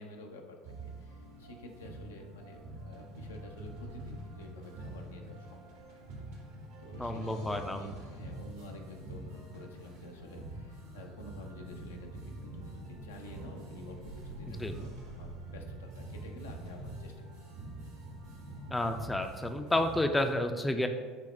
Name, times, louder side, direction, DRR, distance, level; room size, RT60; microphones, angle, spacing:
voice 1, 0.0-5.6 5.9-6.0 6.8-17.3, left 2 dB, 85° left, 2 dB, 0.5 m, -50 dB
sound 1, 0.6-20.3, right 1 dB, 70° right, 1.1 m, -45 dB
voice 2, 7.0-7.9 14.6-14.7 18.7-20.9, left 1 dB, 10° left, 7 dB, 0.4 m, -30 dB
5.9 x 2.1 x 4.2 m, 1.5 s
hypercardioid pair, 70°, 0 cm